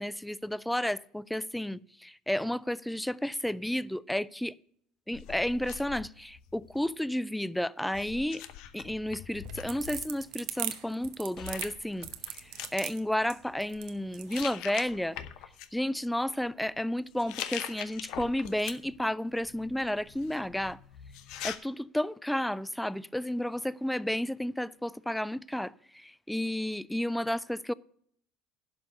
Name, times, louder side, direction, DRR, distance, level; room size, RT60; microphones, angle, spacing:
voice 1, 0.0-4.5 5.1-8.4 8.7-12.1 12.4-15.2 15.7-20.8 21.4-27.7, left 1 dB, 5° left, 0.3 m, -32 dB
sound 1, 5.1-7.0 7.9-10.0 11.0-11.1 11.4-12.7 13.5-13.8 14.3-15.7 17.1-19.0 19.4-21.6, left 11 dB, 60° left, 0.7 m, -42 dB
sound 2, 9.3-14.5, right 14 dB, 65° right, 0.9 m, -38 dB
11.0 x 5.3 x 6.4 m
hypercardioid pair, 70°, 0 cm